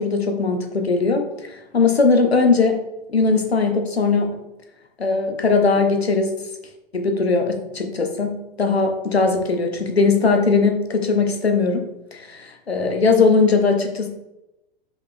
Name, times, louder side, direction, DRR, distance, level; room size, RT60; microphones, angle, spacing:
voice 1, 0.0-4.4 5.0-6.5 6.9-14.1, left 4 dB, 85° left, 5 dB, 1.0 m, -20 dB
5.4 x 5.0 x 3.5 m, 0.94 s
figure-of-eight pair, 100°, 31 cm